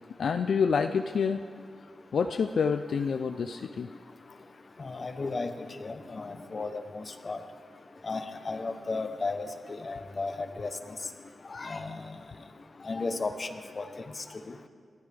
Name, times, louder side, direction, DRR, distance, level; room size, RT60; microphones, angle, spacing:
voice 1, 0.1-1.4 2.1-3.9 4.3-4.4 11.5-11.7, left 6 dB, 60° left, 7 dB, 0.4 m, -28 dB
voice 2, 4.8-5.5 5.8-7.4 8.0-10.7 11.5-12.0 12.8-13.5 13.8-13.9, left 3 dB, 35° left, 8 dB, 0.9 m, -34 dB
30.0 x 12.5 x 3.5 m, 2.2 s
wide cardioid pair, 160°, 0 cm